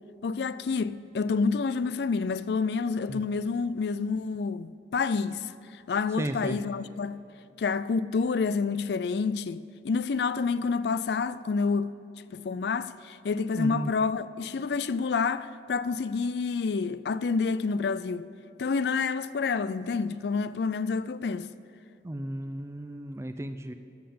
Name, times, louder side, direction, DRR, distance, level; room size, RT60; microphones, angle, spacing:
voice 1, 0.2-5.5 5.9-7.2 7.6-11.9 12.3-18.3 18.6-21.5, left 4 dB, 65° left, 0.4 m, -28 dB
voice 2, 6.2-6.6 13.5-13.9 22.0-23.7, right 1 dB, 15° right, 0.4 m, -34 dB
13.5 x 5.8 x 8.5 m
head